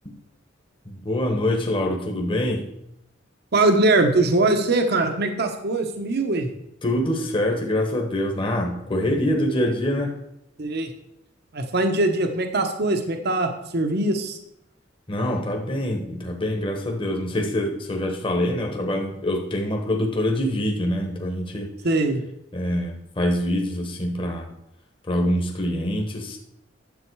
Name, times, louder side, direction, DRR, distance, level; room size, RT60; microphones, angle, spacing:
voice 1, 0.8-2.6 6.8-10.2 15.1-21.7 22.5-24.5 25.1-26.4, left 1 dB, 25° left, 1 dB, 1.3 m, -25 dB
voice 2, 3.5-6.5 10.6-10.9 11.5-14.4 21.8-22.2, right 2 dB, 55° right, 5 dB, 1.0 m, -21 dB
10.5 x 7.5 x 4.7 m, 0.80 s
head